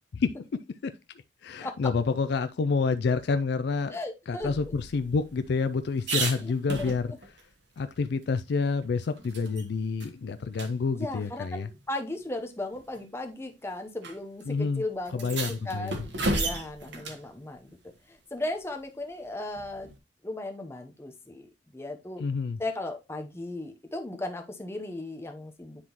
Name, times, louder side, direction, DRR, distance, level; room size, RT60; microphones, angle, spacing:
voice 1, 0.1-0.9 1.4-4.0 4.3-7.1 7.8-11.7 14.5-16.0 22.2-22.6, left 4 dB, 55° left, 0.3 m, -28 dB
voice 2, 3.9-4.5 6.4-6.5 6.8-6.9 11.0-17.7 18.1-19.9 20.2-21.5 21.7-22.2 22.6-25.8, left 2 dB, 15° left, 0.8 m, -36 dB
sound 1, 4.4-7.4 7.8-7.9 8.2-9.7 10.0-10.1 10.5-10.7 11.7-11.8 12.7-13.0 14.0-14.1 14.4-14.5 15.1-17.3 19.5-20.0, right 2 dB, 60° right, 1.3 m, -34 dB
9.8 x 3.7 x 2.9 m
head